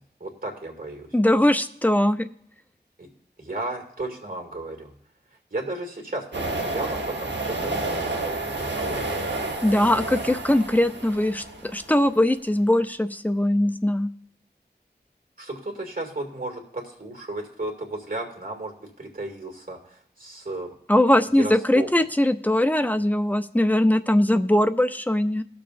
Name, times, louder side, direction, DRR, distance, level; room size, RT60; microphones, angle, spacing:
voice 1, 0.2-1.1 3.0-3.1 3.4-4.9 5.5-9.2 15.4-20.7 21.4-21.9, right 2 dB, 55° right, 2 dB, 2.2 m, -34 dB
voice 2, 1.1-2.3 9.6-14.1 20.9-25.4, left 1 dB, 10° left, 9 dB, 0.5 m, -21 dB
sound 1, 6.3-12.1, right 2 dB, 90° right, 1.2 m, -30 dB
19.5 x 6.9 x 2.6 m, 0.71 s
wide cardioid pair, 50°, 18 cm